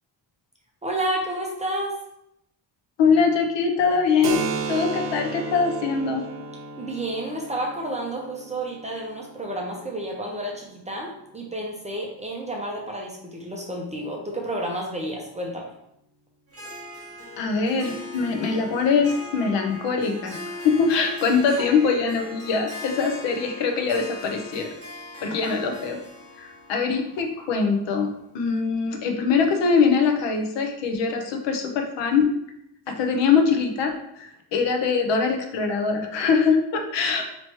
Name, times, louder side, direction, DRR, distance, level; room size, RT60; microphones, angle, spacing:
voice 1, 0.8-1.9 6.8-15.7, right 1 dB, 15° right, -1 dB, 0.4 m, -30 dB
voice 2, 3.0-4.4 4.7-6.2 17.4-20.4 20.6-24.7 25.2-26.0 26.4-28.1 28.3-32.3 32.9-33.9 34.2-37.3, left 5 dB, 75° left, 4 dB, 0.8 m, -22 dB
Keyboard (musical), 4.2-11.6, right 5 dB, 60° right, 0.6 m, -35 dB
Harp, 16.5-28.3, left 1 dB, 35° right, 1.3 m, -40 dB
3.0 x 3.0 x 4.3 m, 0.78 s
cardioid pair, 170°, 44 cm